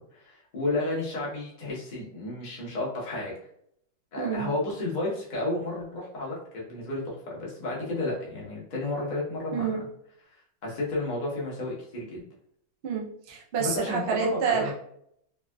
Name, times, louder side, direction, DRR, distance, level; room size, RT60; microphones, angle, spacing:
voice 1, 0.1-3.3 4.1-9.8 10.6-12.2 13.6-14.7, left 2 dB, 40° left, -4 dB, 0.7 m, -32 dB
voice 2, 4.2-4.5 9.5-9.8 12.8-14.7, right 6 dB, 75° right, -2 dB, 0.5 m, -28 dB
3.4 x 2.4 x 2.2 m, 0.70 s
omnidirectional pair, 1.9 m